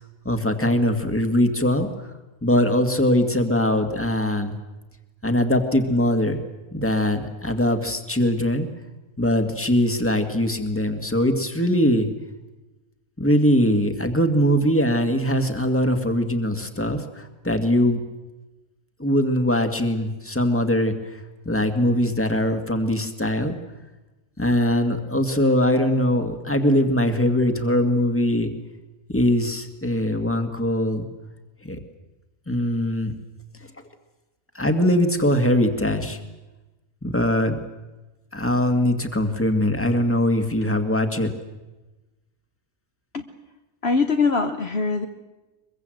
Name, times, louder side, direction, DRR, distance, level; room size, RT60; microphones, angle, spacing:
voice 1, 0.2-1.9 2.4-4.5 5.2-6.4 6.7-8.7 9.2-12.1 13.2-18.0 19.0-21.2 21.5-23.6 24.4-28.5 29.1-31.1 31.6-31.8 32.5-33.1 34.6-36.2 37.0-37.6 38.3-41.3, left 1 dB, 10° left, 6 dB, 2.0 m, -21 dB
voice 2, 43.8-45.1, left 4 dB, 50° left, 5 dB, 1.3 m, -22 dB
23.5 x 23.0 x 7.8 m, 1.1 s
omnidirectional pair, 1.4 m